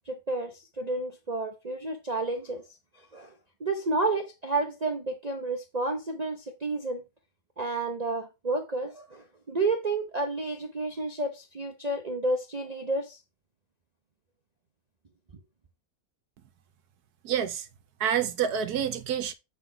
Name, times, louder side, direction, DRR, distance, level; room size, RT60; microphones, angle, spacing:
voice 1, 0.1-2.6 3.1-3.3 3.6-7.0 7.6-13.2, right 2 dB, 45° right, 0.5 m, -30 dB
voice 2, 17.2-17.7 18.0-19.3, right 8 dB, 75° right, 1.2 m, -28 dB
7.2 x 3.9 x 4.5 m
omnidirectional pair, 1.7 m